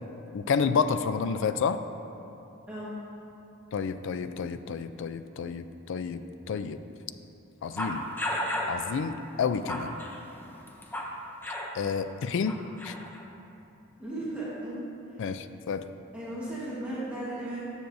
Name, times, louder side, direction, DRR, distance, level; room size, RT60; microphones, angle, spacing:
voice 1, 0.3-1.8 3.7-6.2 6.5-6.8 7.6-8.1 8.7-10.0 11.7-12.6 12.8-12.9 15.2-15.9, left 6 dB, 60° left, 11 dB, 0.3 m, -30 dB
sound 1, 7.8-8.8 9.4-11.2 11.4-11.7 12.5-13.2, left 1 dB, 10° left, 0.6 m, -33 dB
voice 2, 14.0-14.8 15.1-15.2 16.1-17.7, right 1 dB, 5° right, -9 dB, 1.3 m, -36 dB
13.5 x 6.3 x 2.6 m, 2.8 s
head